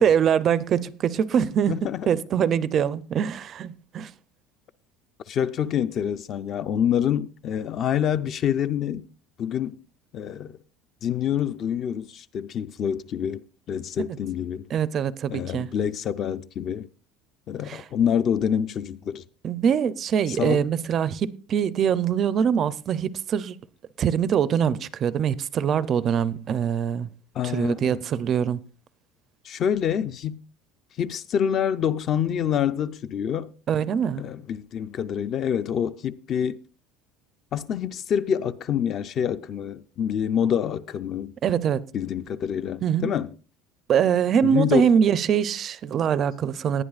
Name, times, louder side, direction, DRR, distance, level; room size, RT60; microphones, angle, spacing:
voice 1, 0.0-4.1 14.7-15.7 17.6-17.8 19.4-23.6 24.0-27.1 27.4-28.6 33.7-34.2 41.4-41.8 42.8-43.1 43.9-46.8, right 8 dB, 30° right, 0.4 m, -23 dB
voice 2, 1.7-2.1 5.3-9.1 9.4-9.8 10.1-10.6 11.0-13.4 13.7-14.7 15.3-16.9 17.5-19.2 20.3-20.6 27.3-28.0 29.4-30.4 31.0-33.5 34.2-36.6 37.5-41.3 41.9-43.4 44.4-44.9, left 8 dB, 30° left, 0.4 m, -26 dB
19.0 x 11.0 x 2.4 m
cardioid pair, 170°, 0 cm